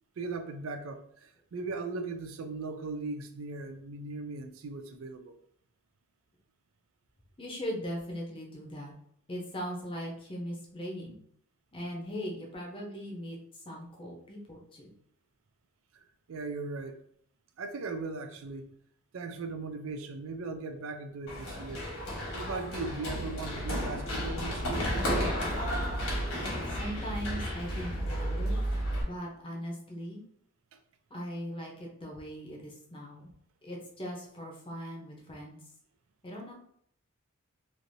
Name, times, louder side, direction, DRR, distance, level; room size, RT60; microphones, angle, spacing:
voice 1, 0.2-5.4 15.9-17.0 17.6-18.7 19.1-21.9 22.3-25.1 30.7-30.8, right 3 dB, 65° right, 7 dB, 0.4 m, -38 dB
voice 2, 7.4-8.9 9.3-11.2 11.7-14.9 26.7-28.6 29.1-30.2 31.1-33.3 33.6-35.6 36.2-36.5, equal, 25° left, -1 dB, 0.7 m, -39 dB
Run, 21.3-29.0, equal, 70° left, 1.3 m, -32 dB
3.1 x 2.6 x 2.6 m, 0.66 s
head